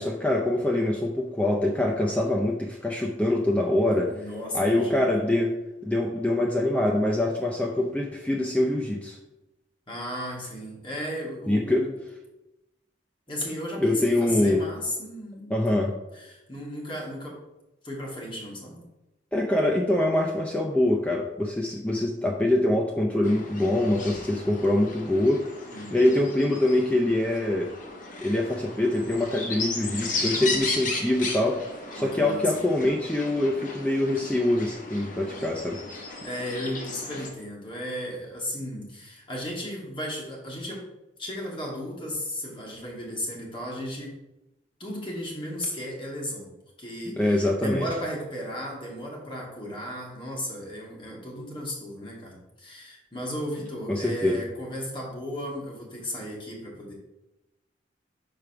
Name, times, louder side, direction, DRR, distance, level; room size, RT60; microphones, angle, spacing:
voice 1, 0.0-4.2 4.5-5.6 5.8-9.2 11.5-11.9 13.8-14.6 15.5-15.9 19.3-25.4 25.9-27.7 28.2-31.6 31.9-35.8 47.1-47.9 53.9-54.4, left 1 dB, 10° left, 0 dB, 0.6 m, -24 dB
voice 2, 4.1-5.1 7.8-7.9 9.9-11.9 13.3-17.4 17.8-18.8 25.7-26.0 31.9-32.6 36.2-40.9 41.2-44.2 44.8-46.5 46.8-56.9, equal, 30° left, -3 dB, 2.1 m, -35 dB
sound 1, 23.2-37.3, left 3 dB, 50° left, 1.1 m, -35 dB
5.1 x 4.7 x 5.9 m, 0.96 s
head